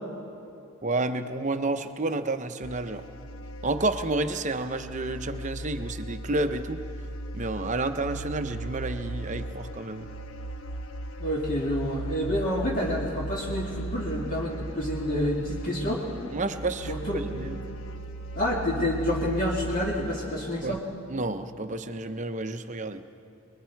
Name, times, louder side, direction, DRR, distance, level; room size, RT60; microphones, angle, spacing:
voice 1, 0.8-3.1 3.6-6.8 7.3-10.1 16.3-17.6 20.6-20.8 21.1-23.0, right 2 dB, 35° right, 8 dB, 0.8 m, -30 dB
sound 1, 2.6-20.8, right 1 dB, 80° left, 1.1 m, -37 dB
voice 2, 11.2-16.0 16.9-17.2 18.4-20.8, left 1 dB, 40° left, -4 dB, 2.0 m, -28 dB
28.0 x 21.0 x 4.6 m, 2.7 s
head